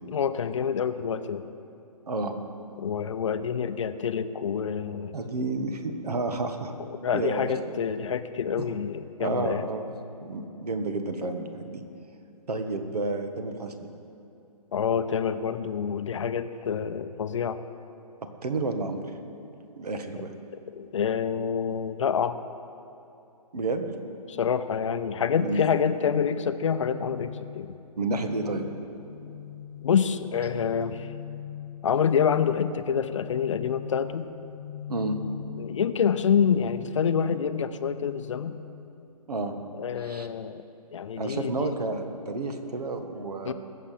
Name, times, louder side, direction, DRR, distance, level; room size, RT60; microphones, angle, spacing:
voice 1, 0.1-1.4 2.8-5.1 6.9-9.6 14.7-17.6 20.7-22.4 24.3-27.8 29.8-31.1 31.8-34.3 35.6-38.6 39.8-40.6 40.9-41.8 43.4-43.5, left 7 dB, 50° left, 11 dB, 0.7 m, -27 dB
voice 2, 2.1-2.4 5.1-6.7 7.1-7.5 8.6-8.7 9.2-9.9 10.2-11.8 12.5-13.9 18.2-19.0 19.8-20.3 23.5-23.9 25.4-25.6 28.0-28.7 34.9-35.2 39.3-39.5 40.0-40.3 41.2-43.5, right 3 dB, 70° right, 7 dB, 1.6 m, -30 dB
sound 1, 26.7-39.8, left 10 dB, 20° left, 1.0 m, -42 dB
21.0 x 7.4 x 5.8 m, 2.8 s
hypercardioid pair, 155°, 20 cm